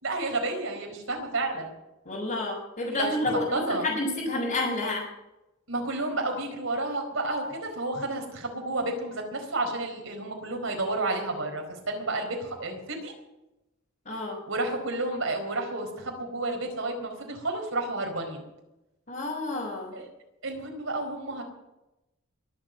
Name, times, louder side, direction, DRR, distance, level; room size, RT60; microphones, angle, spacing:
voice 1, 0.0-1.7 3.0-3.1 3.5-3.8 5.7-13.1 14.5-18.4 19.9-20.1 20.4-21.4, right 2 dB, 70° right, 3 dB, 4.5 m, -31 dB
voice 2, 2.1-5.0 14.1-14.4 19.1-19.9, left 2 dB, 45° left, -7 dB, 5.3 m, -29 dB
22.5 x 8.1 x 7.6 m, 0.95 s
head